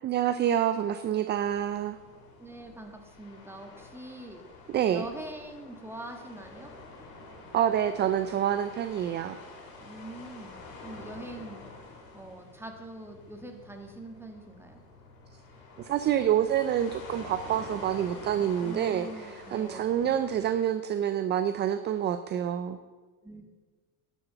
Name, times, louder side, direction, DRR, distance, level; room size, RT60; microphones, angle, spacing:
voice 1, 0.0-2.0 4.7-5.1 7.5-9.4 15.8-22.8, right 10 dB, 25° right, 11 dB, 0.3 m, -27 dB
sound 1, 1.3-20.5, left 3 dB, 80° left, 3.7 m, -48 dB
voice 2, 2.4-4.4 4.9-6.7 9.8-11.6 12.1-14.8 18.6-20.1 23.2-23.4, right 1 dB, 5° right, 3 dB, 1.7 m, -43 dB
11.0 x 7.1 x 6.8 m, 1.4 s
supercardioid pair, 115°, 45 cm